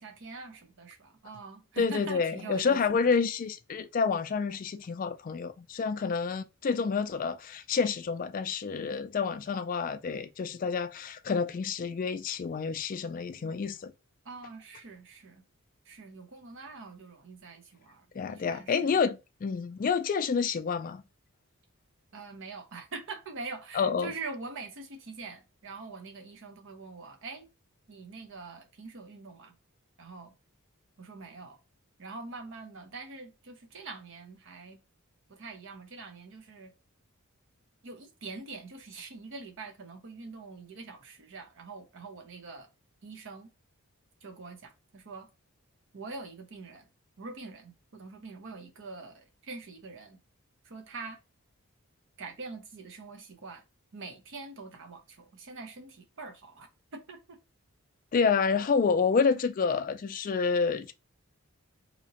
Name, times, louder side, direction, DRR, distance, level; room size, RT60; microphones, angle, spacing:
voice 1, 0.0-3.1 14.2-15.4 15.9-18.7 22.1-27.5 27.9-29.5 30.0-30.3 31.0-31.6 32.0-34.8 35.3-36.7 37.8-42.7 43.0-43.5 44.2-45.3 45.9-46.9 47.2-50.2 50.6-51.2 52.2-53.6 53.9-57.4, right 3 dB, 60° right, 0.7 m, -44 dB
voice 2, 1.8-13.9 18.1-21.0 23.7-24.1 58.1-60.9, left 5 dB, 40° left, 0.3 m, -28 dB
4.1 x 2.8 x 2.8 m
head